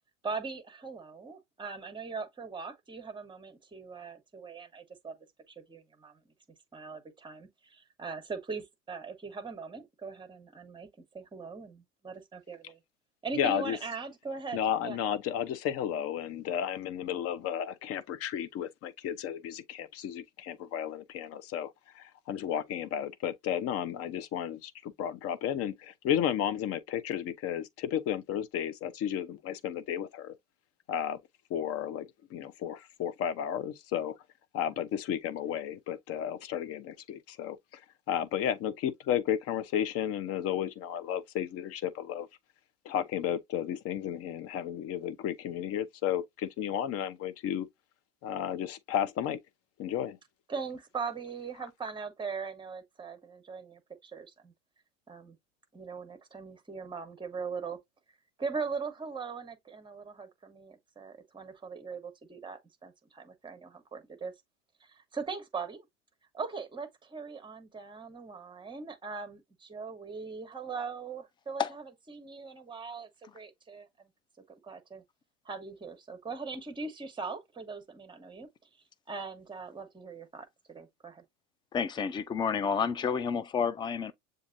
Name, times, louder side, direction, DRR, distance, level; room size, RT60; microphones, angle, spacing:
voice 1, 0.2-5.1 5.5-6.2 6.7-10.9 11.1-12.8 13.2-15.0 50.5-54.5 55.1-55.4 55.7-57.8 58.4-64.3 64.8-65.9 66.3-74.1 74.6-75.0 75.4-78.5 79.1-81.2, right 4 dB, 15° right, 1.1 m, -40 dB
voice 2, 13.3-13.8 14.5-30.3 30.9-31.2 31.5-34.2 34.5-37.8 38.1-42.3 42.8-47.7 48.2-49.4 49.8-50.2, left 10 dB, 40° left, 0.7 m, -33 dB
voice 3, 81.7-84.1, left 6 dB, 15° left, 0.3 m, -30 dB
7.1 x 2.5 x 2.6 m
hypercardioid pair, 105°, 38 cm